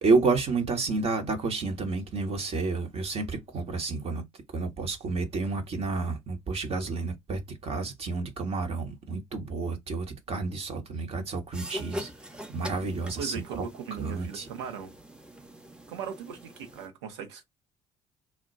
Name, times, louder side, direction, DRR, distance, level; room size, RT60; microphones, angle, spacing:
voice 1, 0.0-4.2 4.5-12.1 12.5-13.6 13.9-14.5, right 3 dB, 45° right, 1.0 m, -30 dB
sound 1, 11.5-16.9, equal, 5° right, 0.7 m, -43 dB
voice 2, 13.2-15.0 15.9-17.4, right 7 dB, 80° right, 0.8 m, -38 dB
2.2 x 2.2 x 3.9 m
hypercardioid pair, 55°, 14 cm